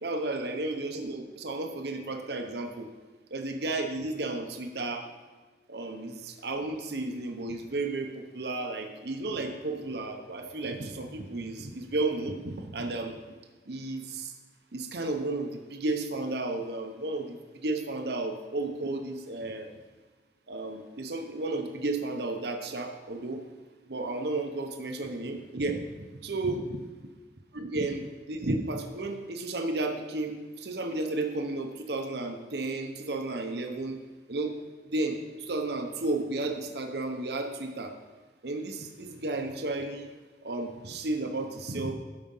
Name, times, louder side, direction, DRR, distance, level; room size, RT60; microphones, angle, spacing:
voice 1, 0.0-2.9 3.3-5.0 5.7-13.2 13.7-14.3 14.7-19.7 20.5-23.4 23.9-25.8 26.2-26.8 27.5-34.0 34.3-34.5 34.9-37.9 38.4-40.1 40.4-41.9, right 2 dB, 60° right, 5 dB, 0.8 m, -33 dB
12.5 x 4.9 x 5.5 m, 1.3 s
head